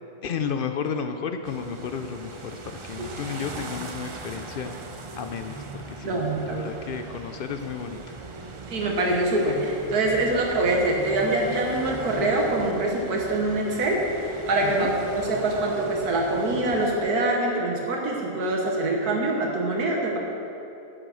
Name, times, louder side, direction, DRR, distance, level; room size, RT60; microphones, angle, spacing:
voice 1, 0.2-4.7 5.2-8.0 14.6-14.9, left 6 dB, 75° left, 7 dB, 0.5 m, -32 dB
sound 1, 1.4-17.0, right 3 dB, 50° right, 0.3 m, -39 dB
voice 2, 6.0-6.6 8.7-20.2, right 2 dB, 85° right, -1 dB, 1.7 m, -24 dB
10.0 x 8.7 x 6.3 m, 2.9 s
omnidirectional pair, 1.6 m